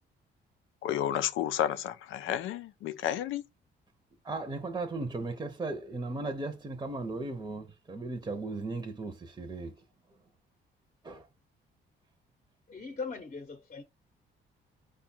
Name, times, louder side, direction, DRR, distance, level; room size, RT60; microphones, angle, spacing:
voice 1, 0.8-3.4, left 11 dB, 85° left, 0.5 m, -31 dB
voice 2, 4.2-9.8 11.0-11.3, right 3 dB, 20° right, 0.7 m, -36 dB
voice 3, 12.7-13.8, left 4 dB, 35° left, 0.8 m, -39 dB
4.9 x 2.3 x 4.3 m
cardioid pair, 90°, 20 cm